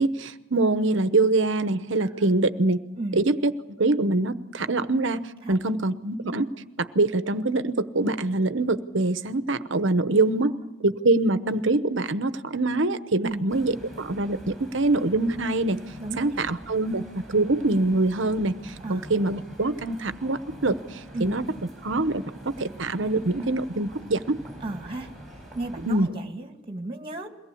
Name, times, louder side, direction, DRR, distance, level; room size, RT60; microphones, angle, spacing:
voice 1, 0.0-2.8 3.1-3.5 3.8-6.5 6.8-10.6 10.8-15.8 16.2-17.0 17.3-20.8 21.2-21.4 21.8-22.2 22.6-24.4 25.9-26.1, right 2 dB, 60° right, 12 dB, 1.0 m, -24 dB
voice 2, 2.0-2.3 3.0-3.2 5.4-5.6 10.4-10.6 13.2-13.5 16.0-16.4 18.8-19.1 21.1-21.3 24.6-25.1 25.5-27.3, right 2 dB, 25° right, 5 dB, 2.3 m, -34 dB
sound 1, 13.5-26.1, right 1 dB, ahead, 5.7 m, -45 dB
22.5 x 18.0 x 8.5 m, 0.92 s
head